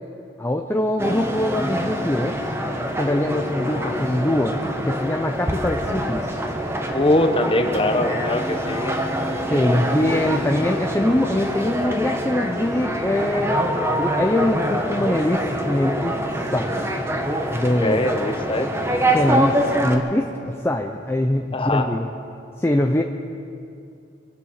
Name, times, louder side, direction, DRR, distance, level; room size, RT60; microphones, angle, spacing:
voice 1, 0.4-2.4 3.0-4.5 4.9-6.4 9.5-13.6 14.0-16.9 17.5-18.0 19.1-22.1 22.6-23.0, left 1 dB, 10° left, 3 dB, 0.5 m, -23 dB
sound 1, 1.0-20.0, right 1 dB, 15° right, 1.2 m, -25 dB
voice 2, 6.9-9.0 17.8-18.7 21.5-21.9, left 1 dB, 25° left, 7 dB, 1.0 m, -22 dB
24.0 x 8.2 x 6.5 m, 2.6 s
head